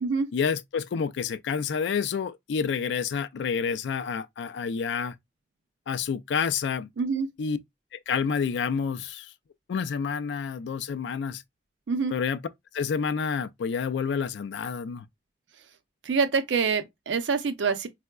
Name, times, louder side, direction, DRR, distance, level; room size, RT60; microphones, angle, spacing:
voice 1, 0.3-5.1 5.9-6.9 7.4-7.6 7.9-9.3 9.7-11.4 12.1-12.4 12.7-15.1, left 6 dB, 70° left, 0.3 m, -29 dB
voice 2, 7.0-7.3 11.9-12.1 16.1-17.9, right 5 dB, 85° right, 0.5 m, -26 dB
4.4 x 2.1 x 2.3 m
head